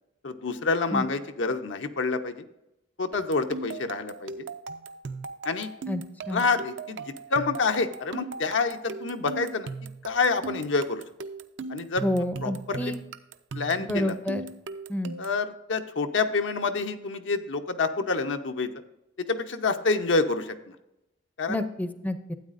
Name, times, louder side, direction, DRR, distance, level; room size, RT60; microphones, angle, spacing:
voice 1, 0.2-2.5 3.0-4.5 5.4-5.7 6.3-9.7 10.0-11.0 11.7-12.0 12.4-12.9 13.5-14.1 15.2-18.7 19.2-20.7 21.4-21.6, left 4 dB, 85° left, 7 dB, 0.8 m, -27 dB
sound 1, 3.1-15.4, right 4 dB, 75° right, 0.5 m, -39 dB
voice 2, 5.9-6.4 12.0-13.0 13.9-14.4 14.9-15.2 21.5-22.3, left 1 dB, 10° left, 10 dB, 0.5 m, -29 dB
12.5 x 8.8 x 2.5 m, 0.90 s
head